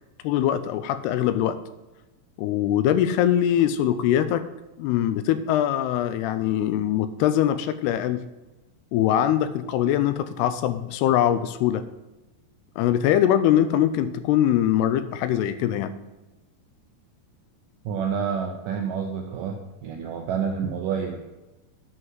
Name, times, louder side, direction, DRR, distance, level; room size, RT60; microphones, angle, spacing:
voice 1, 0.2-1.6 2.4-4.4 4.8-8.2 8.9-11.8 12.8-15.9, left 11 dB, 80° left, 12 dB, 2.5 m, -22 dB
voice 2, 17.9-19.6 19.8-21.2, right 7 dB, 90° right, 3 dB, 1.9 m, -28 dB
9.7 x 5.5 x 7.4 m, 1.1 s
omnidirectional pair, 4.9 m